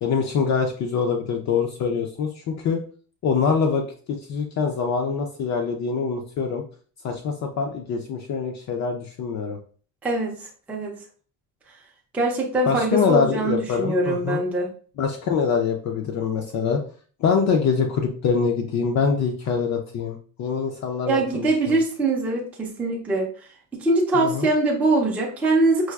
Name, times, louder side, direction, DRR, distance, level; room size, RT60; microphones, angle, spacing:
voice 1, 0.0-2.8 3.2-6.6 7.0-9.6 12.7-14.4 15.0-16.8 17.2-21.8 24.1-24.5, left 5 dB, 50° left, 3 dB, 0.5 m, -24 dB
voice 2, 10.0-11.0 12.1-14.7 21.1-25.9, right 2 dB, 5° right, -3 dB, 0.4 m, -23 dB
4.6 x 2.3 x 2.3 m, 0.42 s
cardioid pair, 160°, 36 cm